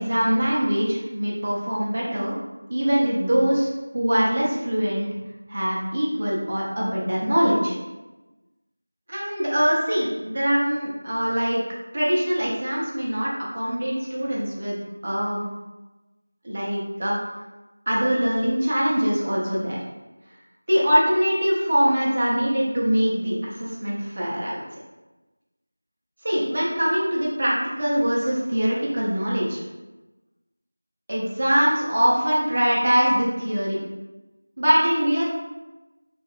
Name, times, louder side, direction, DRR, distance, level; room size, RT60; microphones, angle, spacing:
voice 1, 0.0-2.4 2.7-5.1 5.5-7.7 9.1-11.6 11.9-14.7 15.0-15.4 16.4-17.2 17.9-19.8 20.7-24.6 26.2-29.6 31.1-33.8 34.6-35.2, equal, 30° right, -5 dB, 0.6 m, -23 dB
2.9 x 2.3 x 3.0 m, 1.1 s
figure-of-eight pair, 180°, 0 cm